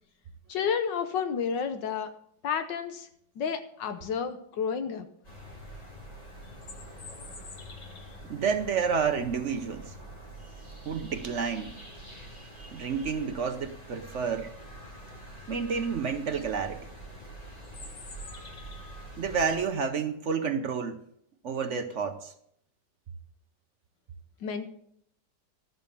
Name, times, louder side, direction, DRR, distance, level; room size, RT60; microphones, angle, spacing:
voice 1, 0.5-2.1 2.4-3.1 3.4-5.1 24.4-24.7, left 6 dB, 75° left, 1.5 m, -31 dB
sound 1, 5.2-19.6, right 1 dB, 20° left, 3.8 m, -45 dB
sound 2, 6.4-8.3 12.8-12.9 13.3-13.7 15.7-15.8 16.2-16.5 17.6-19.0, left 4 dB, 50° left, 1.7 m, -48 dB
voice 2, 8.3-9.9 10.9-11.8 12.3-14.5 15.5-16.9 19.2-21.0 21.4-22.3, right 6 dB, 55° right, 0.9 m, -30 dB
12.5 x 7.0 x 6.8 m
omnidirectional pair, 2.0 m